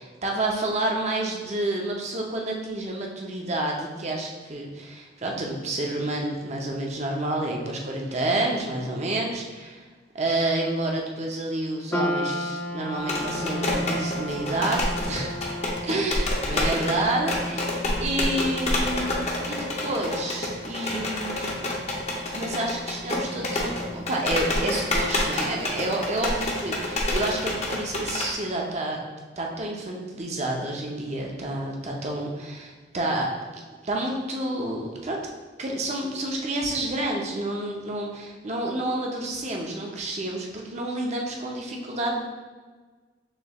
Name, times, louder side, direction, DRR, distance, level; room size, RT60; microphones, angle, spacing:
voice 1, 0.0-9.8 10.1-15.3 15.8-21.5 22.3-29.0 29.4-35.2 35.6-42.2, right 1 dB, 40° right, -1 dB, 0.7 m, -29 dB
sound 1, 11.9-26.3, left 1 dB, 10° left, 0.3 m, -35 dB
sound 2, 13.0-28.3, left 1 dB, 35° left, 0.7 m, -28 dB
6.3 x 3.1 x 2.3 m, 1.4 s
head